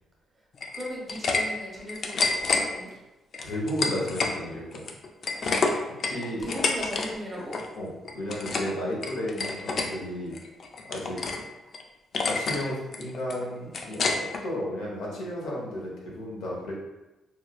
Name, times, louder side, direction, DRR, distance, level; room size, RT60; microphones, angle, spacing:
sound 1, 0.6-1.4 1.7-2.6 3.3-4.3 4.7-7.1 7.3-7.7 8.0-8.7 9.0-9.9 10.3-11.4 11.7-11.8 12.1-12.6 12.9-14.4, left 4 dB, 50° left, 0.4 m, -28 dB
voice 1, 0.7-2.9 6.4-7.6, equal, 30° right, -3 dB, 1.0 m, -37 dB
voice 2, 3.4-4.8 6.0-6.5 7.8-10.3 10.9-11.2 12.3-16.7, equal, 90° left, -3 dB, 0.9 m, -33 dB
4.4 x 2.1 x 2.3 m, 1.0 s
cardioid pair, 100°, 0 cm